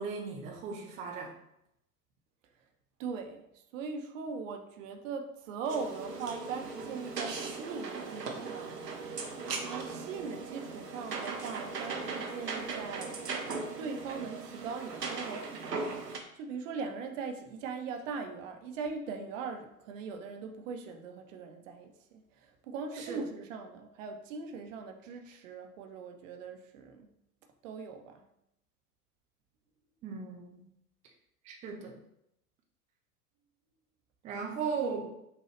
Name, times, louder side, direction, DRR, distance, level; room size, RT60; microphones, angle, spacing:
voice 1, 0.0-1.3 23.0-23.2 30.0-30.7 31.4-32.0 34.2-35.1, right 5 dB, 15° right, 0 dB, 0.4 m, -37 dB
voice 2, 3.0-3.4 3.7-8.8 9.7-13.2 13.8-16.0 16.3-27.1 27.6-28.2, right 5 dB, 55° right, 5 dB, 0.7 m, -40 dB
sound 1, 5.7-16.2, right 4 dB, 90° right, 0.7 m, -38 dB
5.7 x 2.3 x 3.2 m, 0.79 s
figure-of-eight pair, 80°, 47 cm